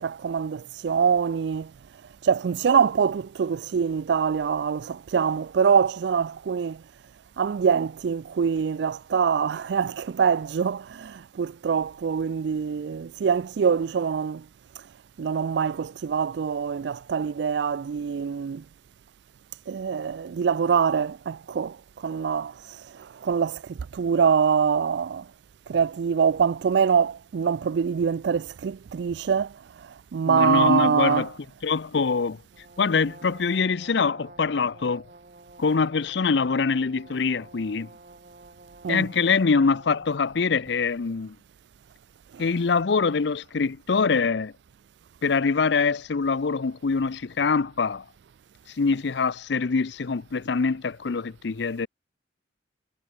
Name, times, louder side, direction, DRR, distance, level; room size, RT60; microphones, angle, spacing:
voice 1, 0.0-1.7 2.2-6.8 7.4-14.4 15.2-18.6 19.7-21.8 22.0-22.5 23.2-23.6 23.9-25.2 25.7-29.5 30.1-31.3 38.8-39.0, right 6 dB, 65° right, 0.3 m, -24 dB
voice 2, 30.3-31.3 31.6-32.4 32.8-35.0 35.6-37.9 38.9-41.4 42.4-44.5 45.2-48.0 48.8-51.9, left 5 dB, 65° left, 0.6 m, -24 dB
Brass instrument, 32.5-40.3, right 2 dB, 45° right, 1.7 m, -50 dB
head